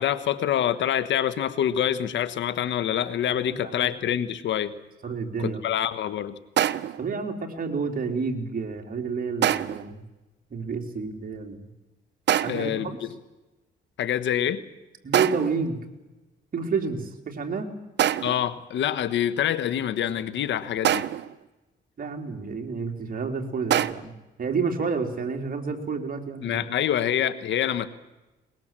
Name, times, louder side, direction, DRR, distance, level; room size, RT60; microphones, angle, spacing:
voice 1, 0.0-4.7 5.4-6.4 12.5-12.9 14.0-14.6 18.2-21.1 26.4-27.9, left 10 dB, 75° left, 13 dB, 1.3 m, -26 dB
voice 2, 3.5-3.9 5.0-5.6 7.0-10.0 10.5-11.7 12.4-13.0 15.0-15.8 16.5-17.7 22.0-24.1 24.4-26.9, right 5 dB, 50° right, 3 dB, 3.5 m, -30 dB
sound 1, 6.6-7.1 9.4-9.9 12.3-12.8 15.1-15.6 18.0-18.5 20.8-21.4 23.7-23.9, right 11 dB, 70° right, 0.8 m, -25 dB
22.5 x 21.0 x 7.6 m, 1.1 s
cardioid pair, 80°, 19 cm